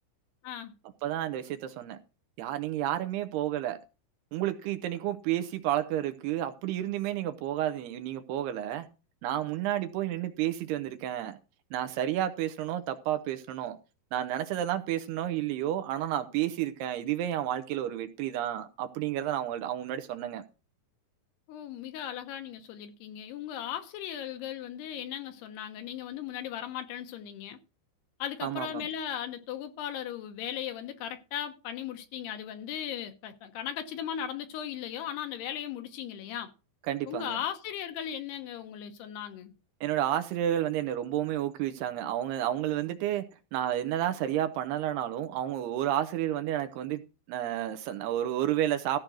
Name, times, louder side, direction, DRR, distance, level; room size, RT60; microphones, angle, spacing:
voice 1, 1.0-2.0 2.4-3.8 4.3-8.9 9.2-11.4 11.7-13.8 14.1-20.4 28.4-28.9 36.9-37.4 39.8-43.3 43.5-47.0 47.3-49.0, right 12 dB, 75° right, 2.8 m, -31 dB
voice 2, 21.5-27.6 28.2-36.5 37.1-39.5, left 10 dB, 75° left, 2.9 m, -37 dB
14.5 x 5.2 x 6.1 m
omnidirectional pair, 5.0 m